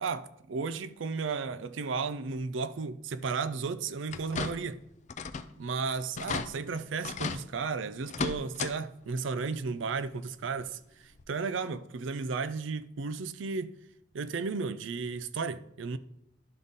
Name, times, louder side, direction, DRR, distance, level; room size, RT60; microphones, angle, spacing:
voice 1, 0.0-4.8 5.6-10.8 11.3-13.7 14.1-16.0, right 4 dB, 80° right, 0.5 m, -34 dB
sound 1, 4.1-4.8 5.1-5.5 5.8-5.9 6.2-6.5 7.0-7.4 8.0-8.7 9.1-9.2 10.6-10.7 11.2-11.3, left 5 dB, 40° left, 0.4 m, -35 dB
11.5 x 4.0 x 3.7 m
head